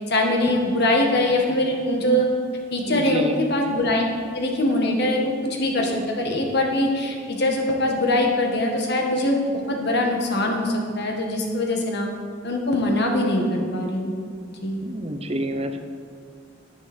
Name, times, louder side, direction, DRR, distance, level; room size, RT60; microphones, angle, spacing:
voice 1, 0.1-2.3 2.7-4.0 4.3-9.4 9.7-12.1 12.4-14.1 14.6-14.8, left 1 dB, 60° left, 1 dB, 1.8 m, -22 dB
voice 2, 2.9-3.4 14.8-15.8, right 1 dB, 30° right, 7 dB, 0.8 m, -28 dB
10.5 x 10.5 x 4.5 m, 2.2 s
head